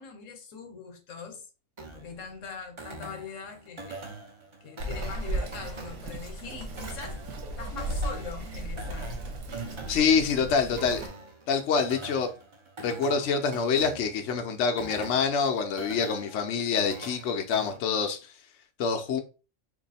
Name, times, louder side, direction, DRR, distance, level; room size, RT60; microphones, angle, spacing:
voice 1, 0.0-1.4 1.9-4.2 4.6-7.2 7.6-9.1 9.5-9.7 10.1-10.4, left 6 dB, 90° left, 1.2 m, -42 dB
sound 1, 1.8-17.8, right 3 dB, 40° right, 0.4 m, -44 dB
Bird vocalization bird call bird song, 4.8-11.1, right 1 dB, 75° right, 1.1 m, -36 dB
voice 2, 9.9-11.0 11.5-12.3 12.8-18.3 18.8-19.2, left 5 dB, 70° left, 0.9 m, -26 dB
2.9 x 2.6 x 4.0 m
omnidirectional pair, 1.3 m